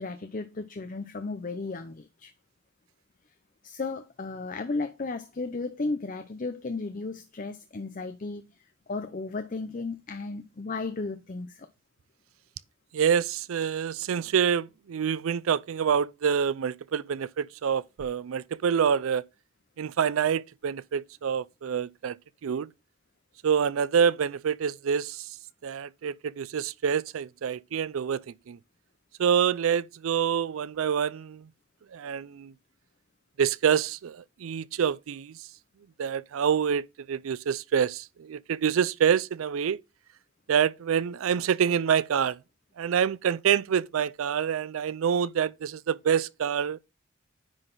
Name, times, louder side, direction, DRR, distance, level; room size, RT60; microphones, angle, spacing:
voice 1, 0.0-2.3 3.6-11.7, left 3 dB, 40° left, 0.5 m, -34 dB
voice 2, 12.9-19.2 19.8-22.2 22.4-22.7 23.4-25.3 25.6-28.2 28.5-28.6 29.2-31.5 31.9-32.5 33.4-35.4 36.0-39.8 40.5-42.4 42.8-46.8, right 7 dB, 90° right, 0.4 m, -26 dB
9.8 x 4.0 x 3.8 m
head